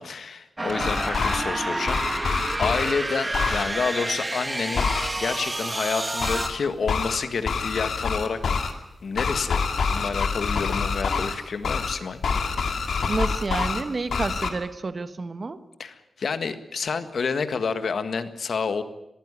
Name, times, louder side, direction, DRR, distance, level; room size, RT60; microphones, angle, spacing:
voice 1, 0.0-4.9 5.1-8.4 9.0-9.6 9.9-12.2 15.8-18.8, left 5 dB, 70° left, 10 dB, 1.7 m, -29 dB
sound 1, 0.6-6.5, right 2 dB, 20° right, 1.8 m, -29 dB
sound 2, 0.7-1.4 1.9-2.9 3.3-3.6 4.8-5.1 6.2-6.5 6.9-7.2 7.5-8.7 9.2-11.3 11.6-11.9 12.2-13.8 14.1-14.5, left 5 dB, 85° left, 2.4 m, -26 dB
voice 2, 13.1-15.6, right 3 dB, 40° right, 11 dB, 1.3 m, -29 dB
22.5 x 15.0 x 9.9 m, 0.87 s
wide cardioid pair, 115°, 0 cm